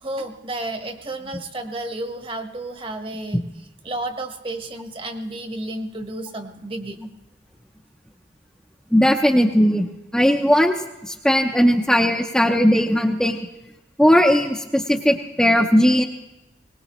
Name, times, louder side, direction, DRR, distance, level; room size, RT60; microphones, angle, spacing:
voice 1, 0.0-3.4 3.8-7.1, right 1 dB, 30° right, 6 dB, 1.1 m, -32 dB
voice 2, 8.9-9.9 10.1-10.7 11.0-13.4 14.0-16.0, equal, 5° left, 1 dB, 0.6 m, -17 dB
21.0 x 19.5 x 3.0 m, 1.0 s
head